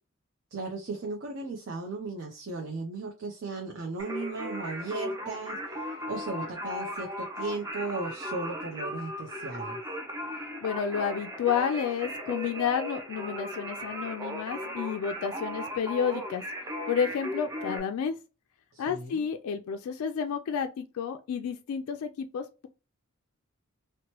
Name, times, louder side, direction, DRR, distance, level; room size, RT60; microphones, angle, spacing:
voice 1, 0.5-9.8 18.7-19.2, right 3 dB, 60° right, 0.6 m, -36 dB
Singing, 4.0-17.8, equal, 15° right, 0.6 m, -37 dB
voice 2, 10.6-16.4 16.9-18.1 18.8-22.7, left 7 dB, 80° left, 0.3 m, -30 dB
2.9 x 2.1 x 2.9 m
head